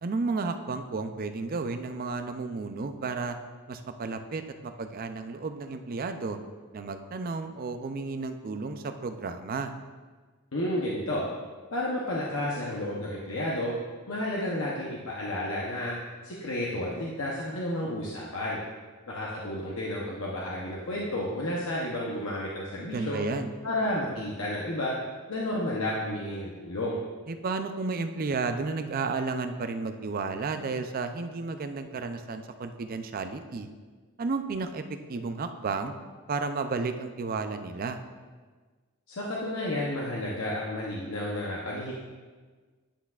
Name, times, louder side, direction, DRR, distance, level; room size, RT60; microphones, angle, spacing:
voice 1, 0.0-3.4 3.7-6.4 6.7-9.7 22.9-23.5 27.3-33.7 34.2-34.8 35.1-35.9 36.3-38.0, right 4 dB, 40° right, 8 dB, 0.4 m, -32 dB
voice 2, 10.5-11.2 11.7-13.7 14.1-16.0 16.2-18.6 19.1-23.2 23.6-24.9 25.3-27.0 39.1-41.9, left 1 dB, 65° left, -5 dB, 0.8 m, -31 dB
10.0 x 5.8 x 2.4 m, 1.4 s
head